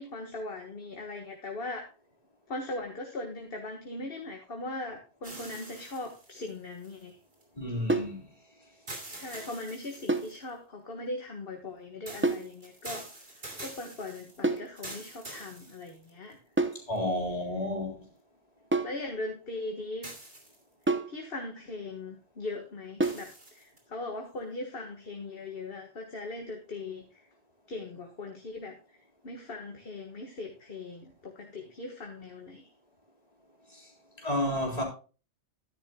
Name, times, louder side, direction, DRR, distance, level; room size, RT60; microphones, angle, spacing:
voice 1, 0.0-1.9 2.5-7.2 9.1-13.1 13.4-16.4 18.8-20.1 21.1-27.2 27.7-28.8 29.2-32.7, left 2 dB, 55° left, 1.7 m, -39 dB
sound 1, 5.2-7.4 8.9-10.5 12.1-16.3 17.0-17.1 20.0-20.8 23.0-23.8, right 2 dB, 55° right, 3.1 m, -45 dB
voice 2, 7.6-8.2 16.9-18.0 33.7-33.8 34.2-34.8, left 1 dB, 35° left, 4.0 m, -31 dB
sound 2, 7.9-8.2 10.1-10.4 12.2-12.5 14.4-14.7 16.6-16.9 18.7-19.0 20.9-21.2 23.0-23.3, right 2 dB, 10° right, 0.7 m, -28 dB
13.0 x 10.5 x 2.2 m
omnidirectional pair, 1.2 m